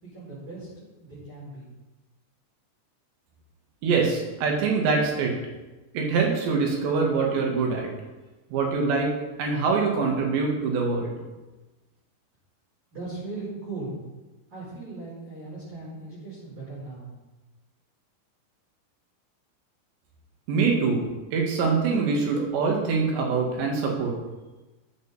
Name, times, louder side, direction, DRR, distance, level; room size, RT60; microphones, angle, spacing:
voice 1, 0.0-1.7 12.9-14.0 14.5-17.1, right 3 dB, 20° right, -10 dB, 4.9 m, -38 dB
voice 2, 3.8-5.4 5.9-7.9 8.5-9.1 9.4-11.2 20.5-21.0 21.3-24.2, right 4 dB, 80° right, 0 dB, 4.2 m, -24 dB
14.0 x 7.8 x 4.3 m, 1.1 s
omnidirectional pair, 5.0 m